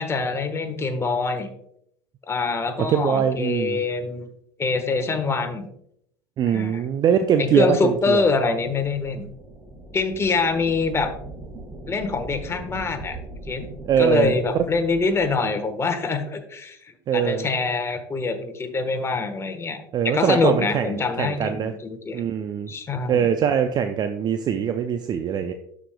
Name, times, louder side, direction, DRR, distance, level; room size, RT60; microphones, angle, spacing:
voice 1, 0.0-1.5 2.3-4.3 4.6-5.7 6.5-6.8 7.4-9.2 9.9-11.1 11.9-13.2 13.5-13.6 14.0-22.2 22.7-23.3, left 4 dB, 20° left, 6 dB, 1.2 m, -25 dB
voice 2, 2.8-3.8 6.4-8.2 13.8-14.4 17.1-17.5 19.9-21.7 22.1-22.7 23.1-25.5, right 8 dB, 35° right, 8 dB, 0.5 m, -22 dB
sound 1, 7.9-15.4, right 2 dB, 20° right, 1.7 m, -41 dB
12.5 x 5.0 x 2.2 m, 0.72 s
hypercardioid pair, 75°, 12 cm